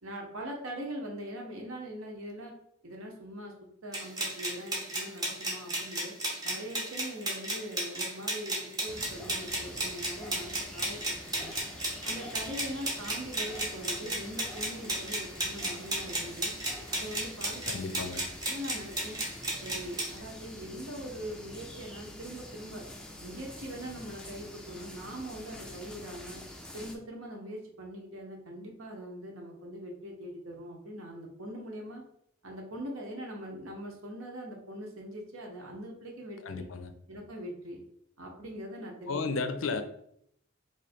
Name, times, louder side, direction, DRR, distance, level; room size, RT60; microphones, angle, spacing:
voice 1, 0.0-2.5 2.8-3.5 3.8-6.1 6.4-11.6 12.0-16.5 16.9-18.1 18.5-19.2 19.6-22.8 23.2-26.4 26.7-32.0 32.4-36.7 37.1-37.8 38.2-39.3, equal, 75° right, 0 dB, 0.9 m, -42 dB
sound 1, 3.9-20.2, right 1 dB, 20° right, 0.8 m, -34 dB
sound 2, 8.9-27.0, left 1 dB, 5° left, 0.3 m, -46 dB
voice 2, 17.7-18.2 36.4-36.9 39.1-39.8, left 4 dB, 70° left, 8 dB, 0.5 m, -33 dB
3.1 x 2.5 x 4.2 m, 0.71 s
head